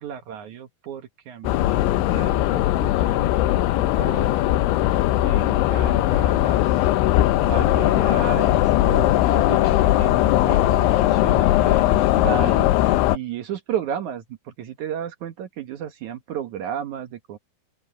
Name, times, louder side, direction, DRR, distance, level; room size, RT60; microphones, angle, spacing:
voice 1, 0.0-6.9 7.4-17.4, right 9 dB, 80° right, 1.7 m, -34 dB
sound 1, 1.4-13.2, left 15 dB, 80° left, 3.2 m, -19 dB
sound 2, 2.1-12.1, left 6 dB, 15° left, 4.3 m, -41 dB
open air
omnidirectional pair, 5.6 m